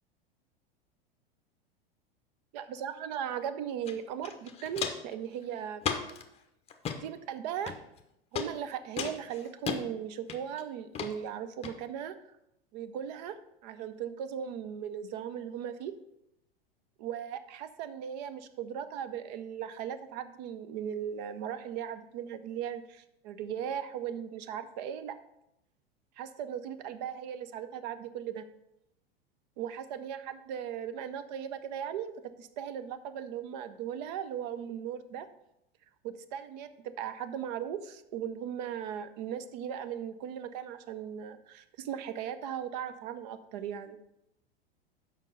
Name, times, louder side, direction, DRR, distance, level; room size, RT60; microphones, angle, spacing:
voice 1, 2.5-5.8 7.0-7.7 8.3-12.2 12.7-15.9 17.0-25.2 26.2-28.5 29.6-35.3 36.0-44.0, right 9 dB, 45° right, 12 dB, 0.7 m, -38 dB
Walk footsteps, 3.9-4.0 4.2-5.1 5.8-6.2 6.7-7.0 7.7-8.0 8.4-8.5 9.0-9.8 10.3-10.6 10.9-11.1 11.6-11.7, left 7 dB, 20° left, 0.8 m, -34 dB
7.2 x 5.4 x 6.5 m, 0.84 s
figure-of-eight pair, 90°, 30 cm